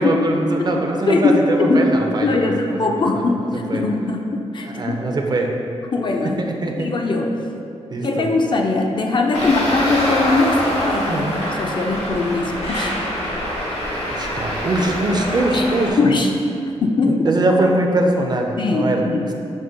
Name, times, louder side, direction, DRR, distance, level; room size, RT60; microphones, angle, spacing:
voice 1, 0.0-3.3 3.7-3.8 4.6-5.5 6.4-6.9 7.9-8.3 11.1-11.4 14.1-16.0 17.1-19.0, right 2 dB, 40° right, 2 dB, 0.4 m, -22 dB
voice 2, 1.1-2.0 2.2-5.0 5.9-6.4 6.8-7.3 8.0-12.9 15.5-15.6 16.0-16.3 16.8-17.3 18.6-19.3, left 3 dB, 45° left, 2 dB, 0.4 m, -20 dB
Traffic noise roadway noise, 9.3-15.9, equal, 75° left, 1.1 m, -24 dB
5.0 x 2.2 x 3.7 m, 2.6 s
cardioid pair, 80°, 11 cm